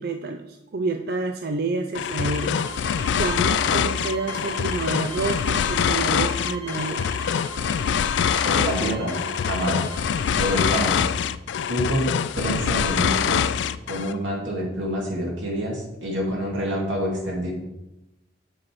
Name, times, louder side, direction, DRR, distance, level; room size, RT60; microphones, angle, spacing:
voice 1, 0.0-2.6 2.8-7.1, right 3 dB, 55° right, 5 dB, 0.5 m, -29 dB
sound 1, 1.9-14.2, left 8 dB, 70° left, 0.3 m, -24 dB
sound 2, 2.1-10.8, right 2 dB, 35° right, 1.8 m, -39 dB
voice 2, 8.3-9.1 9.5-9.9 10.3-11.1 11.7-12.1 12.3-13.4 13.9-17.5, equal, 85° right, -2 dB, 2.5 m, -27 dB
7.8 x 5.7 x 4.6 m, 0.90 s
head